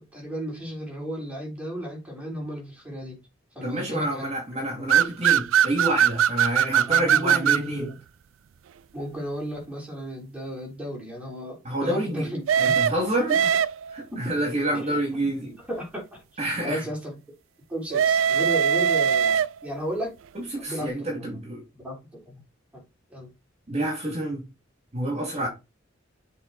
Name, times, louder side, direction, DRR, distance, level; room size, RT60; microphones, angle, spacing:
voice 1, 0.0-3.2 3.6-4.3 4.7-4.8 6.9-8.0 8.9-12.8 14.1-14.3 14.7-15.0 15.7-17.1 17.7-20.1 20.6-21.3 21.8-22.4 22.7-22.8 23.1-23.3, equal, 5° right, 3.5 m, -34 dB
voice 2, 3.6-7.9 11.6-12.3 12.6-13.4 13.9-15.5 16.4-16.8 20.3-21.6 23.7-24.4 24.9-25.5, right 1 dB, 35° right, 2.5 m, -28 dB
sound 1, 4.9-7.7 12.5-14.0 17.9-19.8, right 8 dB, 85° right, 0.3 m, -21 dB
7.3 x 4.3 x 4.1 m
head